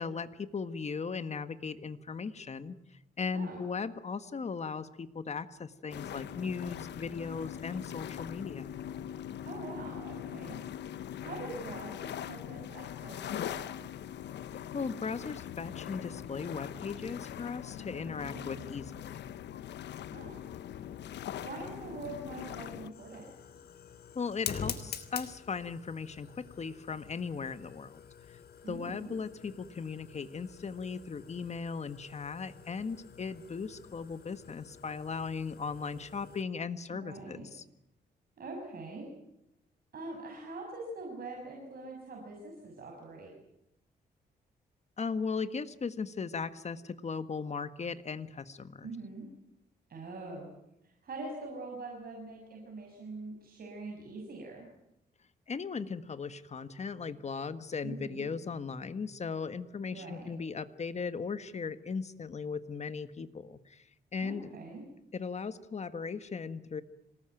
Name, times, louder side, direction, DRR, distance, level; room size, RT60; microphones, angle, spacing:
voice 1, 0.0-2.8 3.2-8.7 14.7-19.0 24.1-28.0 28.7-37.6 45.0-48.9 55.5-63.8 64.1-64.5 65.1-66.8, left 5 dB, 40° left, 11 dB, 1.6 m, -37 dB
sound 1, 5.9-22.9, left 10 dB, 85° left, 1.0 m, -42 dB
voice 2, 9.4-10.6 11.2-13.9 18.2-18.4 20.1-20.4 21.4-23.3 28.6-29.1 36.9-37.5 38.4-39.1 39.9-43.3 48.8-49.2 49.9-50.5 50.8-54.7 57.8-58.3 59.9-60.3 64.2-64.8, right 3 dB, 60° right, 0 dB, 6.5 m, -44 dB
Fire, 20.7-36.4, left 7 dB, 65° left, 3.2 m, -47 dB
26.0 x 19.5 x 9.2 m, 0.85 s
cardioid pair, 105°, 17 cm